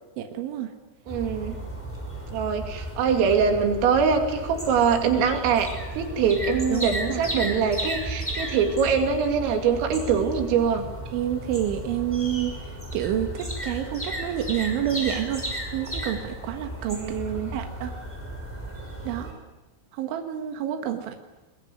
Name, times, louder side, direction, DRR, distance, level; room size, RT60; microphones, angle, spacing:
voice 1, 0.2-0.7 6.7-7.3 11.1-12.5 12.9-15.5 15.7-17.2 17.5-17.9 19.1-19.3 19.9-21.2, right 11 dB, 75° right, 5 dB, 3.9 m, -28 dB
sound 1, 1.1-19.3, right 1 dB, ahead, 5.1 m, -34 dB
voice 2, 1.1-1.6 2.3-10.9 16.9-17.5, right 6 dB, 90° right, 5 dB, 5.2 m, -23 dB
22.5 x 22.5 x 9.7 m, 1.1 s
omnidirectional pair, 5.7 m